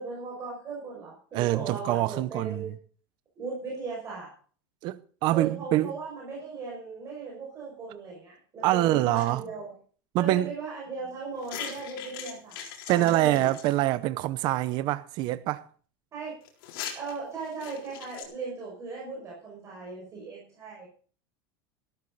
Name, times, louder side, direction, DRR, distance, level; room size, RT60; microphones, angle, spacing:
voice 1, 0.0-2.7 3.4-4.3 5.3-9.7 10.2-12.6 12.9-13.5 16.1-16.3 16.9-20.9, right 4 dB, 25° right, 6.1 m, -37 dB
voice 2, 1.3-2.7 4.8-5.9 8.6-9.4 10.1-10.5 12.9-15.6, right 16 dB, 40° right, 0.7 m, -25 dB
sound 1, 9.1-9.3 11.4-13.8 16.4-18.2, left 9 dB, 75° left, 3.9 m, -40 dB
14.0 x 13.0 x 4.0 m
supercardioid pair, 165°, 12 cm